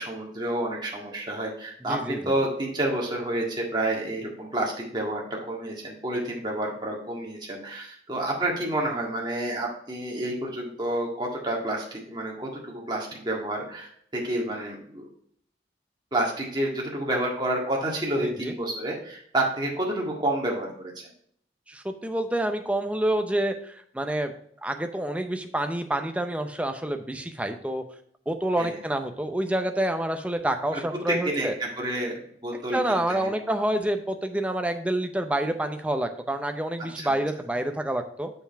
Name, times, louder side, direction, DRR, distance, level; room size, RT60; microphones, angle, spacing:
voice 1, 0.0-15.1 16.1-20.9 28.6-28.8 30.7-30.8 31.1-33.3 37.0-37.2, right 1 dB, 25° right, -2 dB, 1.8 m, -29 dB
voice 2, 1.8-2.3 18.2-18.5 21.7-24.3 24.6-27.8 28.3-31.5 32.7-38.3, right 1 dB, 10° right, 6 dB, 0.6 m, -28 dB
6.8 x 5.8 x 4.5 m, 0.64 s
head